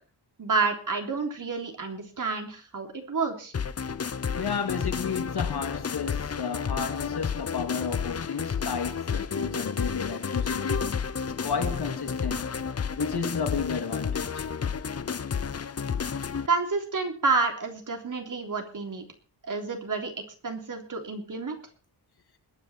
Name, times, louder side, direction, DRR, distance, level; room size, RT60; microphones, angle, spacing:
voice 1, 0.4-3.5 16.5-19.1 19.4-20.1 20.4-21.6, right 4 dB, 45° right, 3.5 m, -29 dB
sound 1, 3.5-16.5, left 6 dB, 35° left, 0.7 m, -31 dB
voice 2, 4.4-11.0 11.4-12.5 13.0-14.5, left 6 dB, 60° left, 2.6 m, -32 dB
21.0 x 10.0 x 4.3 m
wide cardioid pair, 145°, 43 cm